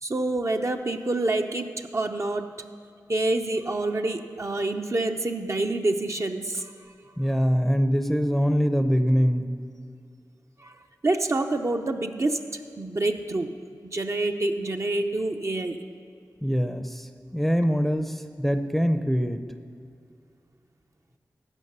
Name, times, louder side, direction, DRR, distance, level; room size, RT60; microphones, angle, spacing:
voice 1, 0.0-2.5 3.1-6.7 10.6-10.7 11.0-13.5 13.8-15.8, right 2 dB, 45° right, 4 dB, 0.7 m, -27 dB
voice 2, 7.2-9.6 16.4-19.4, equal, ahead, 8 dB, 0.6 m, -24 dB
15.5 x 5.8 x 5.5 m, 2.4 s
cardioid pair, 40°, 7 cm